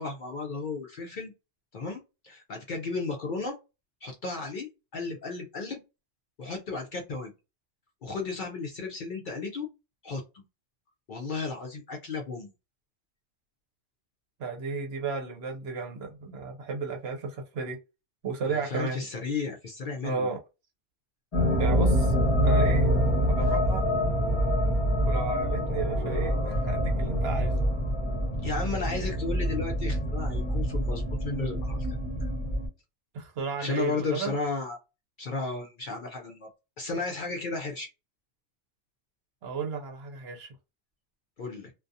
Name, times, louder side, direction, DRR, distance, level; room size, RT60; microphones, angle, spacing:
voice 1, 0.0-1.3 1.7-3.5 4.0-5.8 6.4-7.3 8.0-9.7 10.0-10.2 11.1-12.5 18.5-20.3 28.4-31.9 32.2-32.3 33.6-34.8 35.2-36.5 36.8-37.9 41.4-41.7, left 3 dB, 60° left, 0.5 m, -34 dB
voice 2, 14.4-17.8 18.2-19.0 20.0-20.4 21.5-22.1 22.4-22.9 23.3-23.8 25.0-27.6 33.1-34.4 39.4-40.5, right 4 dB, 65° right, 0.8 m, -33 dB
sound 1, 21.3-32.7, equal, 30° left, 0.9 m, -26 dB
2.3 x 2.3 x 2.6 m
omnidirectional pair, 1.2 m